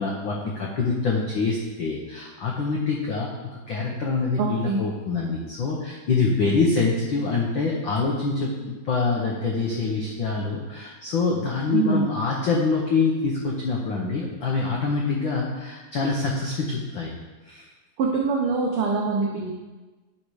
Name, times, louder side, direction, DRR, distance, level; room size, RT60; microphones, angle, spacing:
voice 1, 0.0-3.3 3.7-17.1 17.5-17.6, left 4 dB, 85° left, -2 dB, 1.0 m, -25 dB
voice 2, 4.4-4.9 11.7-12.1 18.0-19.5, right 4 dB, 90° right, 0 dB, 1.2 m, -24 dB
10.5 x 4.4 x 4.7 m, 1.2 s
omnidirectional pair, 3.5 m